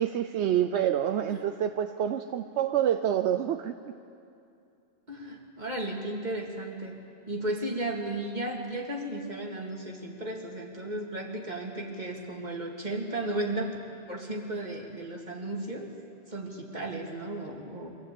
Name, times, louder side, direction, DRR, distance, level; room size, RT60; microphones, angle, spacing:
voice 1, 0.0-3.7, right 10 dB, 75° right, 8 dB, 0.9 m, -27 dB
voice 2, 5.1-13.8 14.1-15.9 16.3-17.9, right 1 dB, 40° right, 0 dB, 2.5 m, -34 dB
24.0 x 15.5 x 8.5 m, 2.6 s
omnidirectional pair, 1.2 m